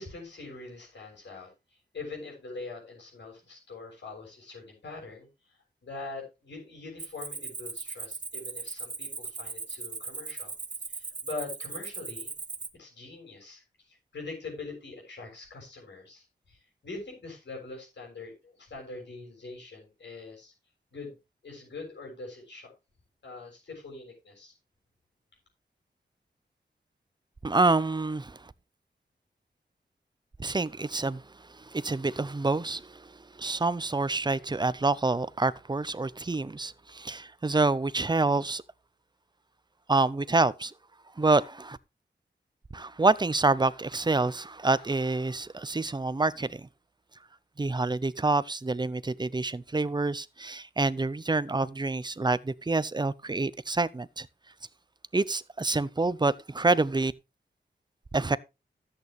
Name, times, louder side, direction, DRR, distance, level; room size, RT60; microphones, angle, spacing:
voice 1, 0.0-1.5 1.9-5.3 5.8-10.5 10.9-12.3 12.7-20.5 20.9-21.2 21.4-22.7 23.2-24.5, left 3 dB, 80° left, 6.7 m, -43 dB
Cricket, 7.0-12.7, right 4 dB, 45° right, 1.0 m, -38 dB
voice 2, 27.4-28.4 30.4-31.2 31.6-38.6 39.9-40.7 41.2-41.8 42.7-46.7 47.6-54.3 55.1-57.1 58.1-58.4, right 3 dB, 25° right, 0.6 m, -27 dB
13.5 x 8.4 x 3.1 m
wide cardioid pair, 105°, 18 cm